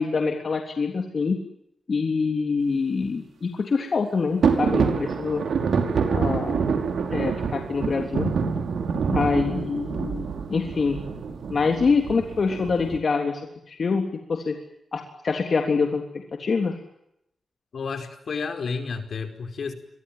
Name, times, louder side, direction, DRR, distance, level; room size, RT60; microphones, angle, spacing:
voice 1, 0.0-1.4 1.9-5.4 6.1-6.7 7.1-8.3 9.1-11.0 11.5-13.4 13.7-14.6 14.9-16.0 16.4-16.8, left 4 dB, 55° left, 4 dB, 3.4 m, -25 dB
sound 1, 4.4-13.0, right 5 dB, 85° right, 5.1 m, -26 dB
voice 2, 17.7-19.7, left 5 dB, 70° left, 7 dB, 4.9 m, -31 dB
30.0 x 24.0 x 7.6 m, 0.80 s
wide cardioid pair, 105°, 0 cm